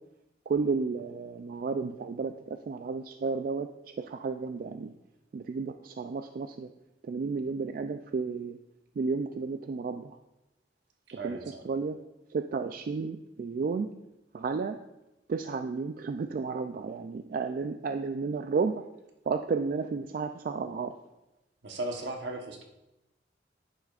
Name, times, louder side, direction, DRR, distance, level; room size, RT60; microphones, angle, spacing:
voice 1, 0.5-4.9 5.3-6.7 7.0-8.6 9.0-10.2 11.2-11.4 11.6-12.0 12.3-13.9 14.3-14.8 15.3-18.9 19.3-20.9, right 4 dB, 50° right, 7 dB, 0.3 m, -32 dB
voice 2, 11.1-11.6 21.6-22.6, right 2 dB, 75° right, 3 dB, 1.0 m, -36 dB
10.0 x 8.2 x 2.4 m, 0.96 s
head